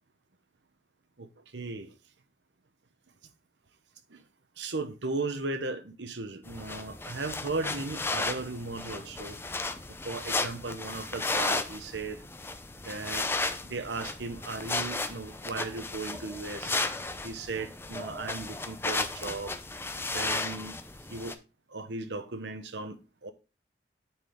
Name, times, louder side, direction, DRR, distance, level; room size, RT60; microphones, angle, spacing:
voice 1, 1.2-2.0 4.1-4.2 4.6-9.4 9.9-12.2 12.8-13.3 13.6-16.8 17.2-19.5 20.1-20.8 21.1-21.4 21.7-23.3, right 3 dB, 80° right, 1.0 m, -36 dB
sound 1, 6.5-21.3, left 3 dB, 15° left, 0.5 m, -34 dB
9.6 x 4.5 x 3.6 m
head